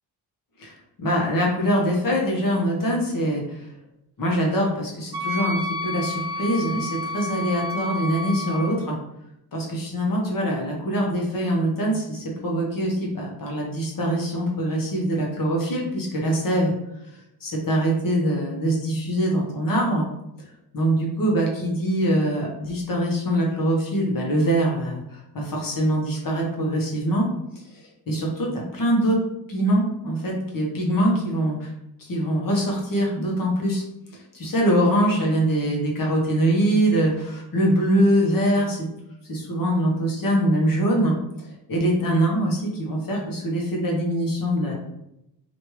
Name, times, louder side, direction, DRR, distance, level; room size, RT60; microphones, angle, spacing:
voice 1, 1.0-3.7 4.2-8.9 9.5-16.7 17.4-20.1 20.7-27.3 28.1-29.2 29.5-31.7 32.0-33.8 34.3-38.9 39.3-41.2 41.7-44.7, right 1 dB, 55° left, -2 dB, 1.1 m, -23 dB
Wind instrument woodwind instrument, 5.1-8.7, left 1 dB, 80° right, 0.6 m, -30 dB
3.1 x 2.6 x 3.1 m, 0.85 s
wide cardioid pair, 120°, 39 cm